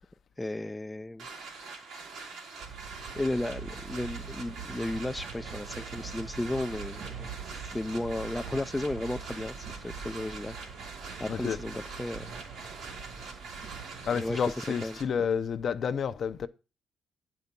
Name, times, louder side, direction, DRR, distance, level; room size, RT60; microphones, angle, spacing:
voice 1, 0.4-1.3 3.2-7.3 7.7-10.6 11.2-12.3 12.7-12.8 14.1-14.4 14.8-15.3, left 1 dB, 10° left, 0.4 m, -34 dB
sound 1, 1.2-15.0, right 4 dB, 90° right, 2.4 m, -44 dB
sound 2, 2.6-14.4, right 6 dB, 60° right, 1.7 m, -44 dB
voice 2, 11.3-11.6 14.1-16.5, left 7 dB, 55° left, 0.7 m, -30 dB
9.3 x 5.7 x 5.3 m
cardioid pair, 95°, 0 cm